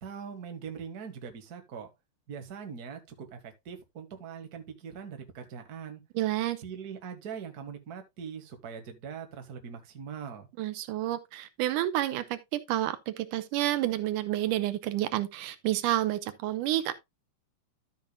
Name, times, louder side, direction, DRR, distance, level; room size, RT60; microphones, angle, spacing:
voice 1, 0.0-1.9 2.3-6.0 6.6-10.5, right 7 dB, 40° right, 1.5 m, -42 dB
voice 2, 6.2-6.6 10.6-16.9, right 14 dB, 85° right, 2.3 m, -29 dB
13.0 x 7.1 x 2.2 m
omnidirectional pair, 3.7 m